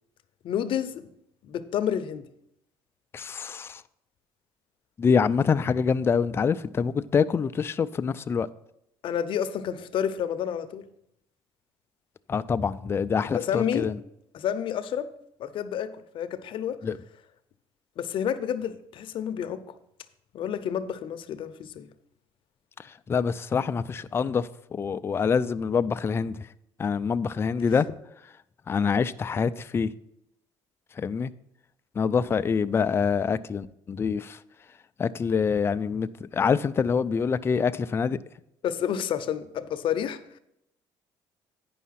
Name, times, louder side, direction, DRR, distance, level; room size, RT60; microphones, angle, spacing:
voice 1, 0.4-1.1 1.4-2.3 9.0-10.8 13.3-13.9 14.3-15.1 15.4-16.8 18.0-19.6 20.3-21.9 38.6-40.2, left 9 dB, 55° left, 0.7 m, -29 dB
voice 2, 3.1-3.8 5.0-8.5 12.3-14.0 16.8-17.0 22.8-26.5 26.8-27.9 28.7-29.9 31.0-31.3 32.0-34.4 35.0-38.2, left 6 dB, 25° left, 0.3 m, -25 dB
9.3 x 5.5 x 5.7 m
cardioid pair, 125°, 10 cm